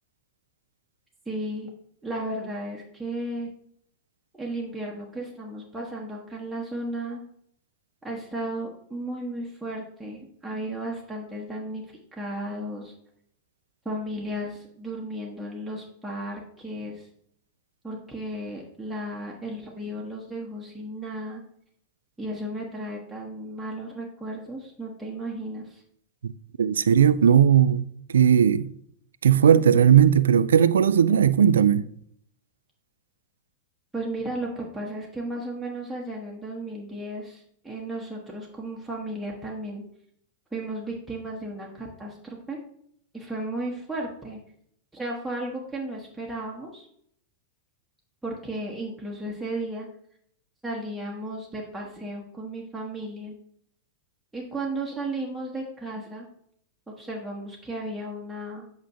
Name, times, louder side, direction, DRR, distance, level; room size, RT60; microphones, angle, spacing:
voice 1, 1.3-1.7 2.0-3.5 4.3-7.2 8.0-11.8 12.1-12.9 13.8-17.1 17.8-21.4 22.2-25.8 33.9-39.8 40.5-42.6 43.1-44.4 44.9-46.9 48.2-49.9 50.6-53.3 54.3-56.3 57.0-58.7, right 1 dB, 5° right, 1.2 m, -34 dB
voice 2, 26.6-27.8 28.1-28.7 29.2-31.9, right 8 dB, 70° right, 0.3 m, -17 dB
7.9 x 5.7 x 2.8 m
figure-of-eight pair, 95°, 0 cm